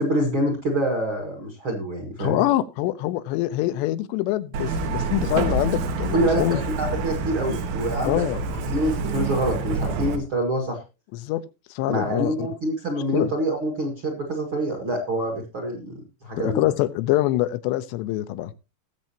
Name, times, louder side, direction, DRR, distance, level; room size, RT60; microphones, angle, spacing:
voice 1, 0.0-2.4 6.1-8.2 8.7-10.8 11.9-16.6, right 1 dB, 50° right, 3 dB, 1.6 m, -26 dB
voice 2, 2.2-6.6 8.0-8.4 11.1-11.4 11.7-12.5 13.1-13.3 16.4-18.5, left 15 dB, 85° left, 12 dB, 2.9 m, -24 dB
Truck, 4.5-10.2, right 3 dB, 85° right, 3.6 m, -27 dB
19.5 x 7.5 x 2.8 m, 0.29 s
omnidirectional pair, 5.0 m